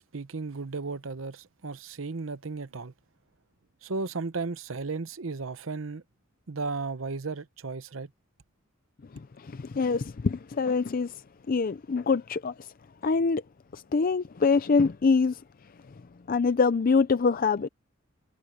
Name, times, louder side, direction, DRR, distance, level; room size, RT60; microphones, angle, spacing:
voice 1, 0.0-2.9 3.8-6.0 6.5-8.1, right 4 dB, 70° right, 0.8 m, -35 dB
voice 2, 9.4-11.1 11.5-12.5 13.0-13.4 13.7-15.4 16.3-17.7, left 4 dB, 45° left, 0.5 m, -24 dB
head